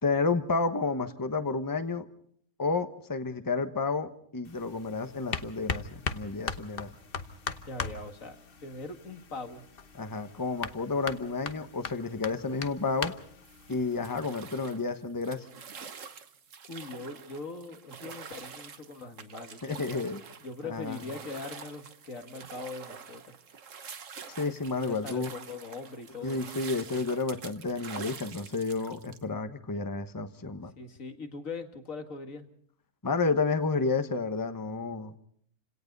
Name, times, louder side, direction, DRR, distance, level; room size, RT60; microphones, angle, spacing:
voice 1, 0.0-2.1 2.6-6.9 9.9-13.1 13.7-15.5 19.6-20.2 20.6-21.0 24.3-25.3 26.2-30.7 33.0-35.2, left 4 dB, 15° left, 9 dB, 1.1 m, -31 dB
sound 1, 4.4-14.3, left 5 dB, 40° left, 1.1 m, -39 dB
voice 2, 7.7-8.4 8.6-9.6 16.7-19.8 20.4-23.2 24.8-26.4 30.8-32.5, left 3 dB, 65° left, 6 dB, 2.4 m, -41 dB
sound 2, 13.5-29.2, right 6 dB, 60° right, 1.5 m, -46 dB
30.0 x 17.5 x 5.4 m, 0.62 s
omnidirectional pair, 1.5 m